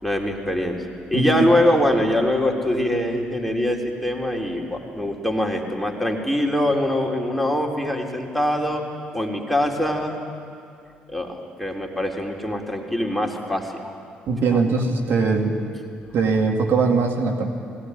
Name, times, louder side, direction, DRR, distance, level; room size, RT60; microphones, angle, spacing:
voice 1, 0.0-0.8 1.1-8.8 9.1-10.1 11.1-14.0 14.4-14.6, left 1 dB, ahead, 1 dB, 4.0 m, -23 dB
voice 2, 1.1-1.5 14.3-15.6 16.1-17.5, right 4 dB, 60° right, 2 dB, 2.2 m, -21 dB
20.5 x 18.0 x 9.9 m, 2.4 s
hypercardioid pair, 50°, 4 cm